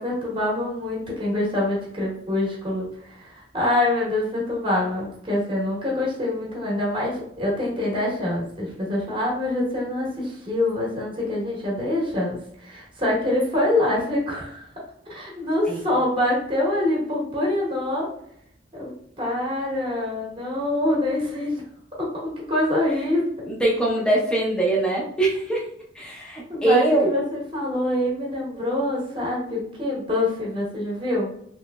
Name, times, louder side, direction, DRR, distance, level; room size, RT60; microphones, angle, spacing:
voice 1, 0.0-14.7 15.1-18.1 18.7-18.9 19.2-21.6 22.0-22.1 22.4-23.3 26.5-31.3, left 1 dB, 25° right, -4 dB, 0.9 m, -25 dB
voice 2, 23.5-25.6 25.9-27.1, right 2 dB, 5° left, -3 dB, 0.6 m, -22 dB
3.1 x 2.9 x 2.2 m, 0.70 s
head